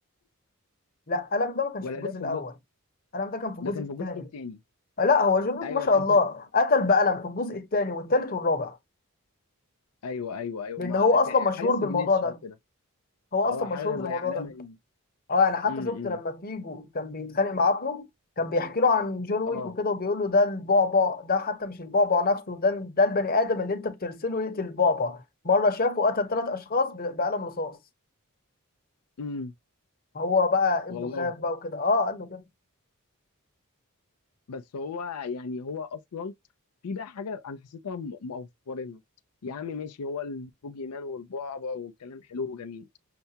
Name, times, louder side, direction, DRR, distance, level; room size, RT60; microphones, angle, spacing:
voice 1, 1.1-2.5 3.1-4.3 5.0-8.7 10.8-12.4 13.3-14.5 15.3-18.1 18.4-27.8 30.1-32.4, left 3 dB, 40° left, 0.9 m, -25 dB
voice 2, 1.8-2.4 3.6-4.6 5.6-6.2 10.0-12.5 13.5-14.8 15.7-16.2 19.5-19.7 29.2-29.5 30.9-31.3 34.5-36.3 36.8-39.0 39.4-42.9, left 5 dB, 85° left, 0.5 m, -36 dB
6.7 x 2.2 x 2.8 m
head